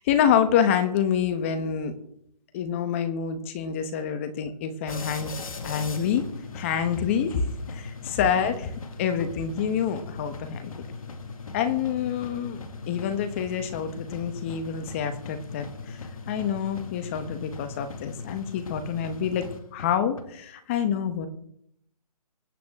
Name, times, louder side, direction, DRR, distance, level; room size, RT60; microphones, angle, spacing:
voice 1, 0.1-1.9 2.5-5.3 5.6-6.3 6.5-7.5 7.7-10.7 11.5-12.6 12.9-16.0 16.3-21.3, left 8 dB, 20° left, 9 dB, 1.1 m, -27 dB
sound 1, 4.9-20.2, left 4 dB, 55° left, 1.9 m, -39 dB
24.5 x 8.3 x 3.6 m, 0.73 s
hypercardioid pair, 165°, 21 cm